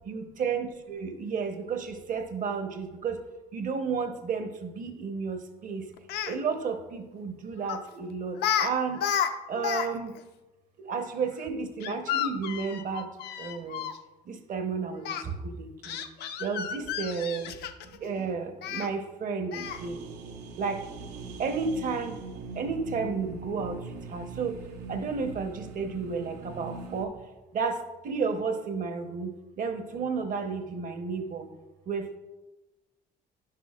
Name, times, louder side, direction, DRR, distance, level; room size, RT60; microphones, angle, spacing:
voice 1, 0.1-3.2 3.5-5.8 6.2-9.0 9.5-10.1 10.8-13.1 13.4-13.8 14.3-16.0 16.4-17.5 18.0-20.0 20.6-20.8 21.4-22.2 22.6-23.8 24.1-24.6 24.9-27.1 27.5-27.8 28.0-31.5 31.9-32.2, right 5 dB, 50° right, 7 dB, 0.9 m, -32 dB
Speech, 6.0-6.4 7.7-7.9 8.4-8.7 8.9-9.9 10.2-10.3 11.8-14.0 15.0-15.2 15.8-18.0 18.6-18.9 19.5-19.9, left 9 dB, 75° left, 0.5 m, -31 dB
sound 1, 19.6-27.1, right 4 dB, 90° right, 0.8 m, -42 dB
10.0 x 6.1 x 2.4 m, 1.1 s
cardioid pair, 110°, 17 cm